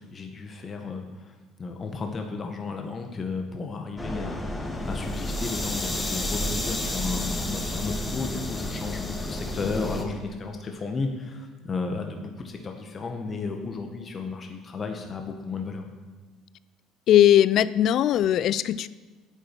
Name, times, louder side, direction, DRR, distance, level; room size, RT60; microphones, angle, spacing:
voice 1, 0.0-15.8, left 4 dB, 35° left, 3 dB, 1.6 m, -33 dB
sound 1, 4.0-10.0, left 1 dB, 15° left, 2.1 m, -31 dB
voice 2, 17.1-18.9, left 11 dB, 55° left, 18 dB, 0.4 m, -19 dB
10.5 x 8.5 x 6.2 m, 1.3 s
hypercardioid pair, 60°, 0 cm